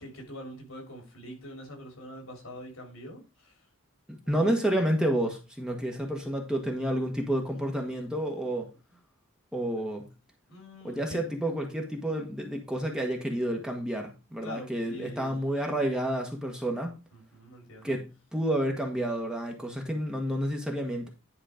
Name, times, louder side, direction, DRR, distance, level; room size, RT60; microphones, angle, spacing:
voice 1, 0.0-3.6 4.2-4.6 10.5-11.3 14.4-15.4 17.1-18.0, equal, 70° left, 1 dB, 3.6 m, -44 dB
voice 2, 4.3-8.7 9.5-10.1 10.8-16.9 17.8-21.1, right 1 dB, 5° right, 2 dB, 1.3 m, -30 dB
10.5 x 4.2 x 5.1 m, 0.29 s
head